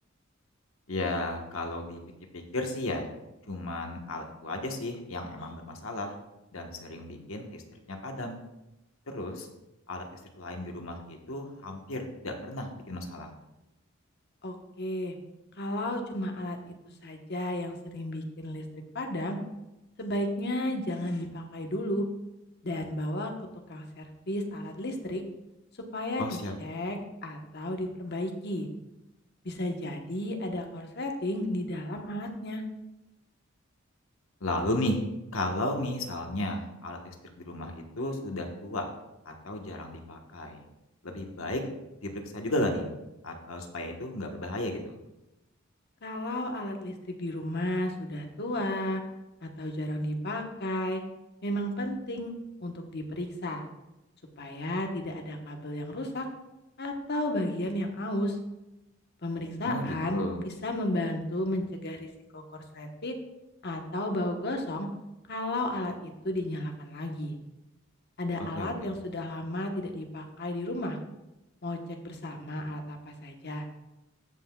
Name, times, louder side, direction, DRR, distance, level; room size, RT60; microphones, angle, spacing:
voice 1, 0.9-2.0 2.3-3.1 3.5-6.1 6.5-7.6 7.9-8.4 9.1-9.5 9.9-10.1 10.4-13.3 26.2-26.5 34.4-35.0 35.3-37.1 37.4-38.8 39.2-40.6 41.0-41.6 42.0-42.9 43.2-45.0 59.6-60.4 68.5-68.7, left 1 dB, 85° left, 3 dB, 1.3 m, -34 dB
voice 2, 14.4-15.1 15.5-16.6 17.0-19.4 20.0-22.0 22.6-23.3 23.7-25.2 25.9-28.7 29.4-32.6 46.0-49.0 49.4-51.0 51.4-52.3 52.6-53.6 54.4-56.3 56.8-58.4 59.2-62.1 62.3-62.4 62.7-63.2 63.6-64.9 65.3-67.4 68.2-71.0 71.6-73.7, left 1 dB, 55° left, 3 dB, 1.1 m, -33 dB
17.0 x 5.8 x 2.3 m, 0.96 s
head